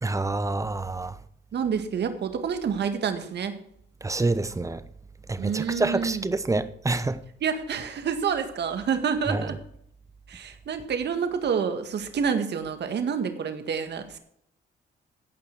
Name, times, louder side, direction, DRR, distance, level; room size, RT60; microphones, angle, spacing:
voice 1, 0.0-1.2 4.0-4.8 5.3-7.2 9.3-9.5, right 2 dB, 15° right, 0.9 m, -27 dB
voice 2, 1.5-3.6 5.4-6.3 7.4-9.6 10.3-14.2, right 6 dB, 60° right, 1.9 m, -28 dB
16.0 x 5.7 x 6.1 m
cardioid pair, 90°, 20 cm